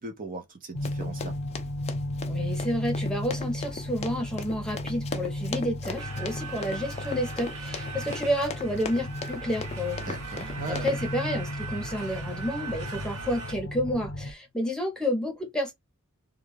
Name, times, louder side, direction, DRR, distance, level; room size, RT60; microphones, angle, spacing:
voice 1, 0.0-1.4 10.0-10.9, right 3 dB, 40° right, 0.6 m, -38 dB
sound 1, 0.7-14.3, left 1 dB, 75° left, 0.6 m, -35 dB
Run, 0.8-11.0, left 4 dB, 30° left, 0.4 m, -39 dB
voice 2, 2.3-10.2 10.7-15.7, equal, 5° left, 0.8 m, -30 dB
sound 2, 6.0-13.5, right 5 dB, 85° right, 1.0 m, -41 dB
2.3 x 2.2 x 3.3 m
head